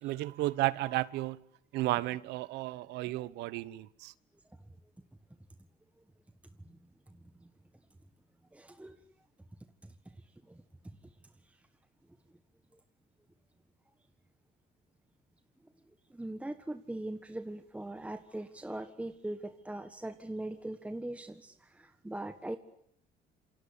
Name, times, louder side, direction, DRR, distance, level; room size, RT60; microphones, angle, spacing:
voice 1, 0.0-1.4 1.7-4.1, right 18 dB, 90° right, 1.1 m, -33 dB
voice 2, 8.5-9.0 16.1-21.5 22.0-22.6, right 1 dB, 5° right, 1.5 m, -40 dB
27.5 x 25.0 x 8.6 m
cardioid pair, 110°, 17 cm